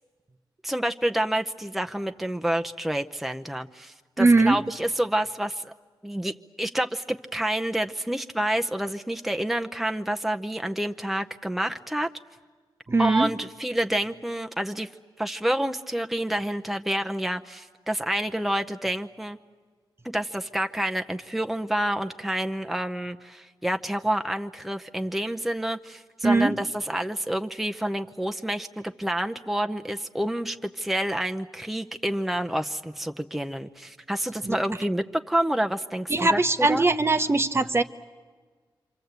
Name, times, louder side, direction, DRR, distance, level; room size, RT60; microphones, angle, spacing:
voice 1, 0.6-5.7 6.0-12.1 13.0-14.9 15.2-19.4 20.0-36.9, right 1 dB, ahead, 5 dB, 0.7 m, -28 dB
voice 2, 4.2-4.6 12.9-13.3 26.2-26.5 34.4-34.5 36.1-37.8, right 3 dB, 30° right, 10 dB, 0.9 m, -20 dB
27.5 x 25.0 x 8.1 m, 1.5 s
cardioid pair, 75°, 9 cm